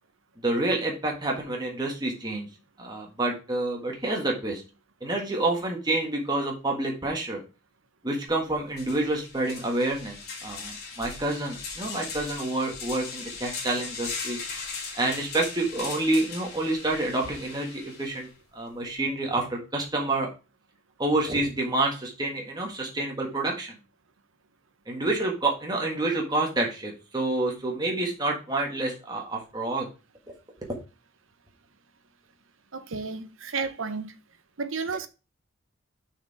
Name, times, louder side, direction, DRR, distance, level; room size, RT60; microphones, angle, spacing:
voice 1, 0.4-2.5 2.8-4.6 5.0-7.4 8.0-14.4 14.9-18.3 18.5-20.3 21.0-23.7 24.9-29.9, right 2 dB, 20° right, 1.5 m, -28 dB
sound 1, 8.3-8.4 8.7-18.3, left 4 dB, 50° left, 2.6 m, -39 dB
voice 2, 32.7-34.2 34.6-35.1, right 4 dB, 70° right, 0.9 m, -32 dB
6.2 x 5.0 x 4.8 m
head